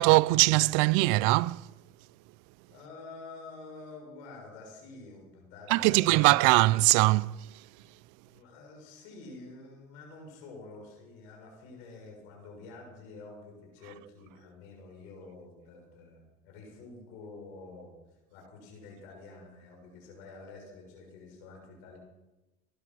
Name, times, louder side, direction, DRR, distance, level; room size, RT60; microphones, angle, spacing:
voice 1, 0.0-1.6 5.7-7.4, right 21 dB, 75° right, 0.6 m, -22 dB
voice 2, 2.7-6.6 8.2-22.0, left 3 dB, 80° left, 6.6 m, -48 dB
19.0 x 11.5 x 6.2 m
hypercardioid pair, 65°, 33 cm